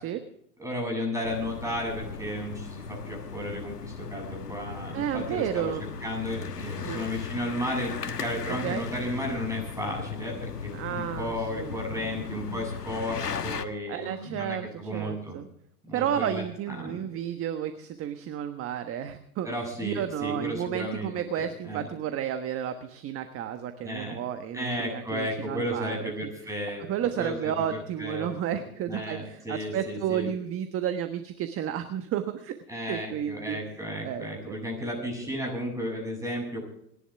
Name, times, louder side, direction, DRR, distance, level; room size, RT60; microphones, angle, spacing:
voice 1, 0.6-5.7 6.0-15.4 15.9-17.0 19.4-21.9 23.8-24.2 24.5-28.3 28.5-28.6 28.9-30.3 32.7-36.7, equal, 5° right, 1 dB, 7.6 m, -34 dB
sound 1, 1.2-13.7, left 6 dB, 90° left, 1.4 m, -37 dB
voice 2, 4.9-5.8 6.8-7.0 8.6-8.8 10.7-11.8 12.1-12.2 13.9-15.5 15.9-19.5 19.8-26.3 26.8-32.6 32.9-33.6 34.0-34.6, right 9 dB, 30° right, 9 dB, 1.3 m, -32 dB
28.5 x 11.5 x 3.5 m, 0.73 s
hypercardioid pair, 105°, 46 cm